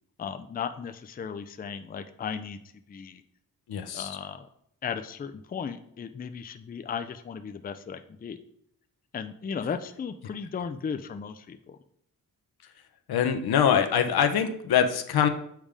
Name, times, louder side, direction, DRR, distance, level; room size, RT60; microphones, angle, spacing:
voice 1, 0.2-2.6 2.9-3.2 3.9-4.5 4.8-8.4 9.1-11.8, left 6 dB, 25° left, 9 dB, 0.4 m, -36 dB
voice 2, 3.7-4.2 13.1-15.3, left 8 dB, 85° left, 6 dB, 0.8 m, -24 dB
7.3 x 3.5 x 4.9 m, 0.72 s
wide cardioid pair, 110°, 37 cm